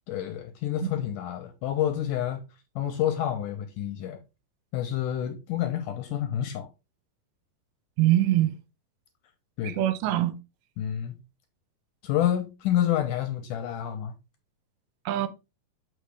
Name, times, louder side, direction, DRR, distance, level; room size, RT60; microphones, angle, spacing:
voice 1, 0.1-2.4 2.8-4.2 4.7-6.7 9.6-9.8 10.8-11.2 12.0-14.1, left 11 dB, 80° left, 2.0 m, -28 dB
voice 2, 8.0-8.5 9.6-10.4 15.1-15.3, right 14 dB, 90° right, 2.5 m, -23 dB
6.7 x 5.1 x 3.4 m
omnidirectional pair, 4.3 m